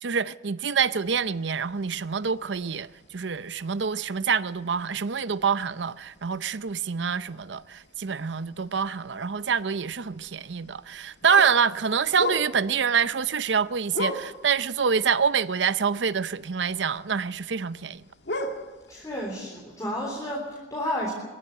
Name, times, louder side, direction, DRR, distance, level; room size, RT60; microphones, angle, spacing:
voice 1, 0.0-18.0, right 6 dB, 80° right, 0.6 m, -26 dB
sound 1, 1.0-19.2, left 1 dB, 70° left, 2.0 m, -40 dB
voice 2, 18.9-21.1, left 1 dB, 20° left, 3.7 m, -31 dB
23.0 x 15.0 x 9.8 m
head